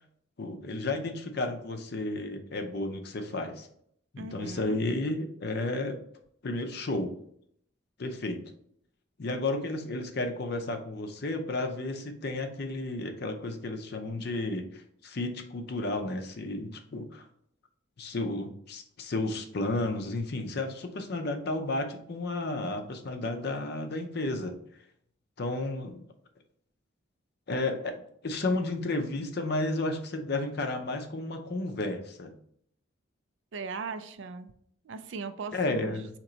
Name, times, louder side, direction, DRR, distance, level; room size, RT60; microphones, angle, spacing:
voice 1, 0.4-3.7 4.1-6.0 6.4-7.1 8.0-8.4 9.2-17.2 18.0-24.6 25.4-26.0 27.5-27.9 28.2-32.3 35.5-36.1, left 2 dB, 55° left, 6 dB, 0.6 m, -32 dB
voice 2, 4.2-4.8 33.5-34.5 34.8-36.1, right 4 dB, 65° right, 10 dB, 0.4 m, -39 dB
4.3 x 2.9 x 3.9 m, 0.68 s
head